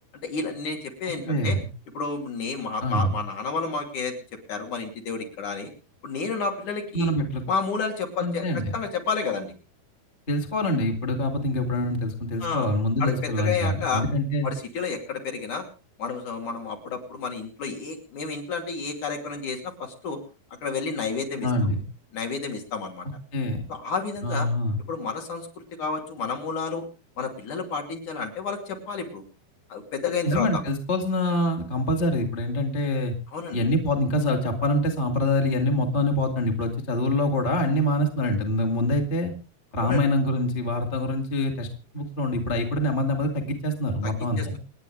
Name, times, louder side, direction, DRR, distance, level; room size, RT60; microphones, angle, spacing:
voice 1, 0.2-1.6 1.9-4.1 4.5-5.7 6.0-7.1 7.5-8.5 8.7-9.5 12.4-12.7 13.0-14.0 14.4-15.6 16.0-20.2 20.6-21.5 22.1-23.1 23.7-24.5 24.9-25.5 25.8-26.8 27.2-29.2 29.7-30.6 33.3-33.6 39.8-40.0 44.0-44.6, left 5 dB, 50° left, 2 dB, 3.8 m, -30 dB
voice 2, 1.2-1.6 2.8-3.2 6.9-7.4 8.2-8.7 10.3-14.5 21.4-21.8 23.3-23.6 24.2-24.8 30.2-33.1 33.5-39.3 39.7-41.7 41.9-44.6, left 1 dB, 15° left, 2 dB, 1.7 m, -25 dB
28.5 x 9.9 x 3.4 m, 0.32 s
omnidirectional pair, 4.8 m